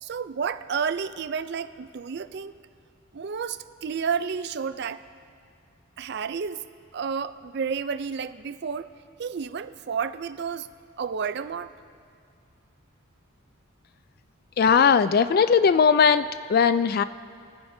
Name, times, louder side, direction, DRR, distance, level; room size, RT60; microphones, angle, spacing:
voice 1, 0.0-2.5 3.1-5.0 6.0-6.6 6.9-8.9 9.2-10.7 11.0-11.7, right 6 dB, 50° right, 12 dB, 0.4 m, -31 dB
voice 2, 14.6-17.0, left 6 dB, 45° left, 13 dB, 0.3 m, -19 dB
27.0 x 9.7 x 2.7 m, 2.3 s
head